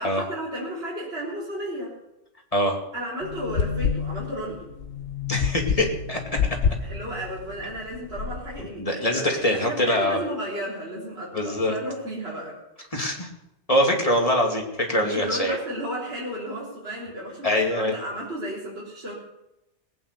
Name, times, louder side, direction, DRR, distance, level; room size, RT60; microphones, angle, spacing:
voice 1, 0.0-2.0 2.9-4.6 6.8-12.9 14.9-19.1, equal, 60° right, -6 dB, 3.8 m, -33 dB
sound 1, 3.2-8.6, left 6 dB, 85° left, 1.3 m, -29 dB
voice 2, 5.3-6.4 8.8-10.2 11.3-11.7 12.9-13.3 13.7-15.6 17.4-17.9, left 1 dB, 30° left, 1 dB, 2.5 m, -23 dB
18.5 x 9.3 x 6.8 m, 0.91 s
omnidirectional pair, 1.2 m